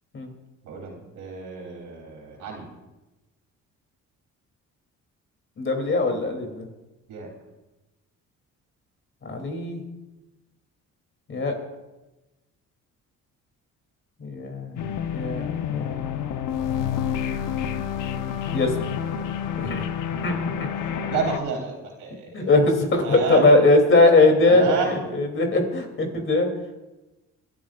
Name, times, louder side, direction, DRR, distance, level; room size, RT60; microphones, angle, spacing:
voice 1, 0.7-2.7 7.1-7.3 21.1-22.5 23.0-23.5 24.5-25.0, right 5 dB, 90° right, 0 dB, 3.8 m, -30 dB
voice 2, 5.6-6.6 9.2-9.8 11.3-11.5 14.2-14.8 15.1-15.9 18.5-18.7 19.6-19.8 20.2-20.3 20.6-20.7 22.3-24.6 24.9-26.5, left 2 dB, 40° left, 3 dB, 3.2 m, -20 dB
sound 1, 14.8-21.4, left 8 dB, 85° left, 1.0 m, -29 dB
28.0 x 12.0 x 2.5 m, 1.1 s
cardioid pair, 90°, 30 cm